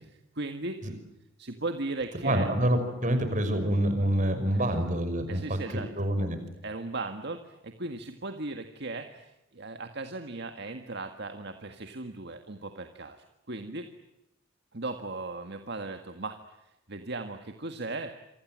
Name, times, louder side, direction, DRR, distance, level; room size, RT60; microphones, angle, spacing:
voice 1, 0.4-0.8 1.4-2.5 4.5-4.8 5.3-5.9 6.6-7.4 7.8-9.1 9.6-13.2 13.5-13.8 14.7-16.4 16.9-18.1, right 2 dB, 60° right, 7 dB, 1.8 m, -36 dB
voice 2, 2.2-5.6 6.0-6.4, right 1 dB, 40° right, 8 dB, 5.7 m, -26 dB
28.0 x 24.5 x 7.6 m, 0.92 s
head